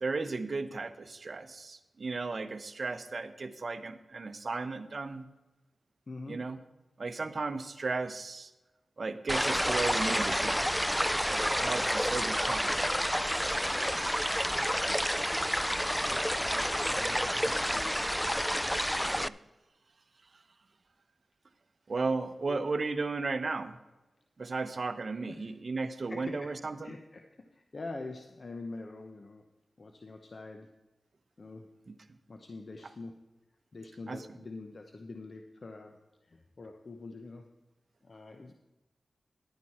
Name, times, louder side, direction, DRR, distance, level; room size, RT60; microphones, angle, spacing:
voice 1, 0.0-5.3 6.3-6.6 7.0-8.5 9.0-10.6 11.3-12.8 19.1-19.3 21.9-23.8 24.4-27.0 31.9-32.0 34.1-34.2, right 3 dB, 55° right, 10 dB, 0.8 m, -35 dB
voice 2, 6.1-6.4 11.8-12.0 16.0-18.2 22.5-22.7 25.3-25.5 26.1-26.5 26.8-29.4 29.8-30.8 31.4-31.7 32.3-33.3 33.7-37.5 38.0-38.5, left 3 dB, 55° left, 5 dB, 0.9 m, -45 dB
sound 1, 9.3-19.3, equal, 5° left, 0.3 m, -29 dB
11.5 x 9.2 x 4.3 m, 1.1 s
cardioid pair, 55°, 0 cm